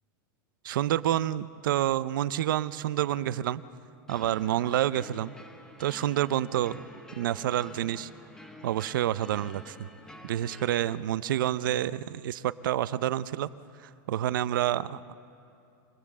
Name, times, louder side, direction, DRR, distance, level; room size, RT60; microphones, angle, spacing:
voice 1, 0.6-3.6 4.1-5.3 5.8-6.8 7.2-8.1 8.6-9.9 10.2-13.5 13.8-15.1, right 12 dB, 80° right, 17 dB, 0.5 m, -28 dB
sound 1, 4.1-10.9, left 1 dB, 5° left, 1.5 m, -49 dB
25.5 x 19.5 x 7.3 m, 2.6 s
supercardioid pair, 165°, 11 cm